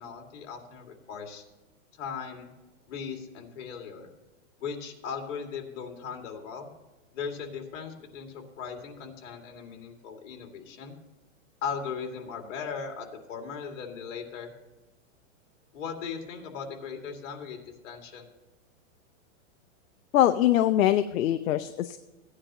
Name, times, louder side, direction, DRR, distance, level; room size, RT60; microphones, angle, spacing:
voice 1, 0.0-1.4 2.0-2.5 2.9-4.1 4.6-6.7 7.1-10.9 11.6-14.5 15.7-18.3, left 6 dB, 65° left, 3 dB, 2.3 m, -38 dB
voice 2, 20.1-22.0, left 12 dB, 80° left, 10 dB, 0.7 m, -23 dB
16.0 x 9.6 x 2.9 m, 1.1 s
supercardioid pair, 150°, 40 cm